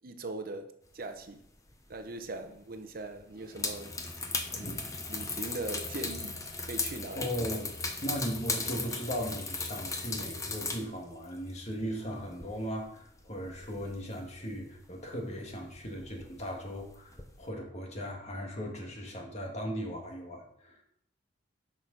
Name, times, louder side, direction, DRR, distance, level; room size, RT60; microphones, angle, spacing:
voice 1, 0.0-1.4 1.9-4.0 4.5-4.8 5.1-7.3, right 2 dB, 50° right, 0.8 m, -40 dB
sound 1, 1.7-2.1 2.3-2.5 3.2-10.9 11.1-14.6 15.0-15.2 15.5-17.5, left 3 dB, 15° left, 0.9 m, -37 dB
voice 2, 4.5-4.8 7.1-7.7 8.0-20.8, equal, 35° left, 1.7 m, -37 dB
9.9 x 6.2 x 3.9 m
head